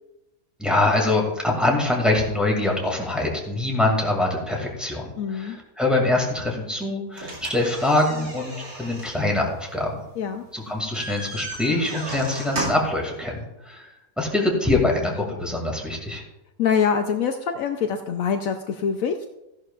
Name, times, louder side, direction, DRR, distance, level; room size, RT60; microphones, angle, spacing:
voice 1, 0.6-10.0 10.5-13.8 14.2-16.2, left 2 dB, ahead, -2 dB, 2.3 m, -24 dB
voice 2, 5.2-5.6 10.2-10.4 16.6-19.3, left 7 dB, 70° left, 6 dB, 1.0 m, -24 dB
sound 1, 7.1-13.0, right 2 dB, 90° right, 2.9 m, -35 dB
15.0 x 11.0 x 2.5 m, 0.94 s
omnidirectional pair, 1.5 m